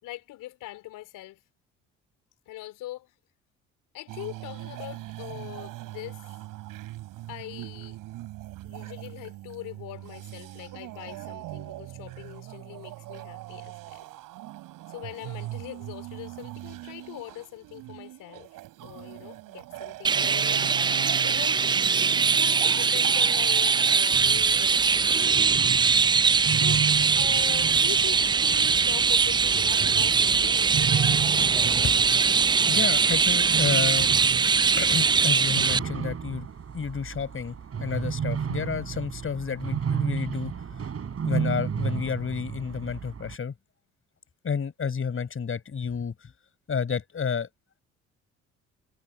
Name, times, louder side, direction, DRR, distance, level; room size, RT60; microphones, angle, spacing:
voice 1, 0.0-1.4 2.5-3.1 3.9-6.3 7.3-8.0 8.6-14.0 14.9-20.6 21.2-21.7 22.3-25.6 26.4-26.9 27.1-31.0, left 16 dB, 60° left, 4.3 m, -42 dB
sound 1, 4.1-24.0, right 17 dB, 60° right, 6.8 m, -40 dB
Chirp tweet, 20.0-35.8, right 5 dB, 15° right, 0.4 m, -22 dB
sound 2, 24.1-43.4, right 7 dB, 40° right, 7.8 m, -33 dB
voice 2, 32.7-34.1 34.8-36.5 36.7-40.5 40.8-40.9 41.2-43.5 44.4-46.3 46.7-47.5, left 6 dB, 35° left, 5.8 m, -30 dB
figure-of-eight pair, 50°, 36 cm